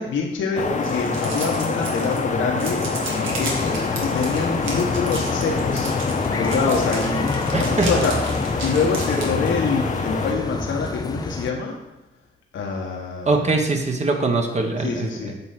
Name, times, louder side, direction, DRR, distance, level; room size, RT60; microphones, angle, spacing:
voice 1, 0.0-5.9 6.3-7.3 7.6-8.2 8.6-11.7 12.5-13.5 14.8-15.3, left 4 dB, 70° left, 0 dB, 1.0 m, -25 dB
sound 1, 0.5-10.3, left 4 dB, 40° left, 0.9 m, -26 dB
sound 2, 0.8-2.3 2.6-9.3, right 3 dB, 75° right, 1.4 m, -34 dB
sound 3, 3.3-11.5, left 4 dB, 20° left, 0.4 m, -29 dB
voice 2, 7.5-7.9 13.3-15.3, right 3 dB, 35° right, 3 dB, 1.0 m, -22 dB
6.8 x 3.1 x 5.7 m, 0.99 s
supercardioid pair, 60°, 21 cm